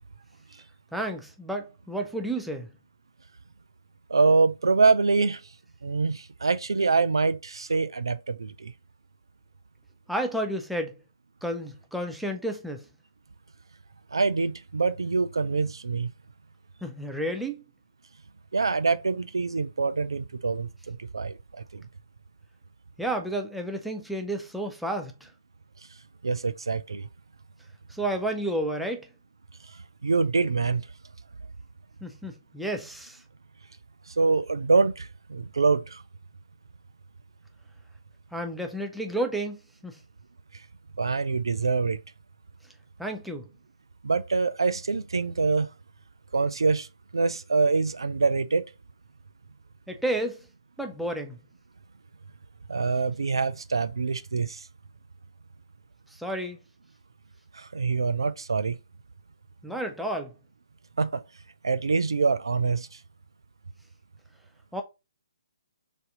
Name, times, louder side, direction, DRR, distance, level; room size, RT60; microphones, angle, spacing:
voice 1, 0.9-2.7 10.1-10.9 11.4-12.8 16.8-17.6 23.0-25.3 27.9-29.1 32.0-33.2 38.3-40.0 43.0-43.5 49.9-50.4 50.8-51.4 56.1-56.6 59.6-60.3 64.7-64.8, right 1 dB, ahead, 0.4 m, -31 dB
voice 2, 4.1-5.4 5.8-8.7 14.1-16.1 18.5-21.4 21.7-21.8 26.2-27.1 30.0-30.9 34.2-36.0 41.0-42.0 44.0-45.7 46.3-46.9 47.1-48.6 52.7-54.6 57.5-58.8 61.0-61.2 61.6-62.9, right 4 dB, 70° right, 0.3 m, -25 dB
3.3 x 2.8 x 3.7 m
figure-of-eight pair, 135°, 3 cm